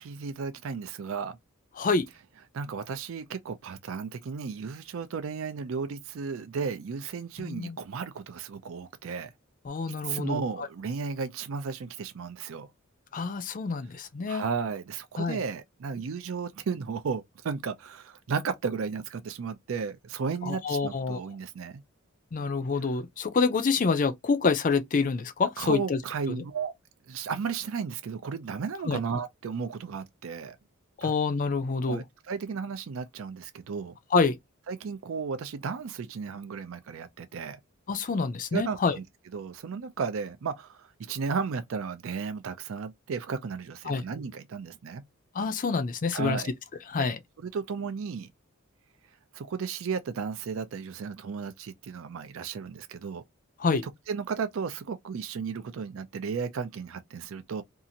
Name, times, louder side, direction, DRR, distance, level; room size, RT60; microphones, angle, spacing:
voice 1, 0.0-1.4 2.5-9.3 10.0-12.7 14.3-21.8 25.6-26.7 27.1-30.6 31.0-31.1 31.9-33.9 34.7-37.6 38.5-39.0 39.3-45.0 46.1-46.5 47.0-47.1 47.4-48.3 49.3-53.2 53.8-57.6, right 5 dB, 65° right, 0.4 m, -34 dB
voice 2, 7.4-7.8 9.7-10.4 13.1-14.4 15.2-15.4 20.4-21.2 22.3-26.0 28.9-29.0 31.0-32.0 34.1-34.4 37.9-39.0 43.9-44.0 45.4-46.4 46.9-47.2 53.6-53.8, left 4 dB, 40° left, 0.4 m, -27 dB
2.7 x 2.4 x 2.7 m
head